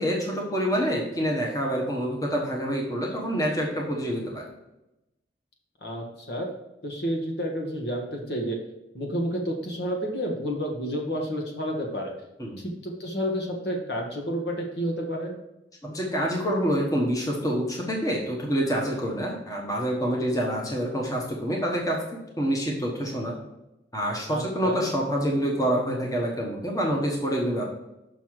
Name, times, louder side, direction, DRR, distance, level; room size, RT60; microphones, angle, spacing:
voice 1, 0.0-4.5 12.4-12.6 15.8-23.4 23.9-27.6, equal, 20° left, -2 dB, 1.2 m, -27 dB
voice 2, 5.8-6.5 6.8-8.6 8.9-12.1 12.6-15.4 24.3-24.8, equal, 60° left, 0 dB, 1.5 m, -30 dB
6.3 x 5.7 x 4.6 m, 0.92 s
head